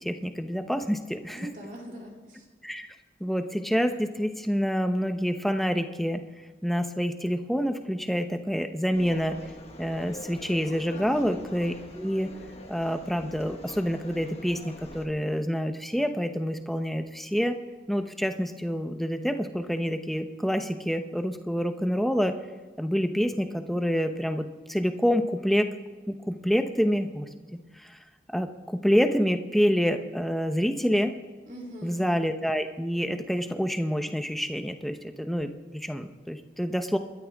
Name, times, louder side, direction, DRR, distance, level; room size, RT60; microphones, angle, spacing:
voice 1, 0.0-1.5 2.6-2.9 3.2-6.2 6.6-9.4 9.8-12.3 12.7-17.6 17.9-22.4 22.8-25.7 26.1-27.3 27.8-28.0 28.3-31.1 31.8-37.0, equal, ahead, 7 dB, 0.9 m, -27 dB
voice 2, 1.3-2.5 10.9-11.3 31.5-32.2, equal, 45° right, -1 dB, 3.1 m, -42 dB
sound 1, 8.9-15.1, left 1 dB, 35° left, 1.6 m, -44 dB
29.0 x 13.0 x 3.6 m, 1.4 s
head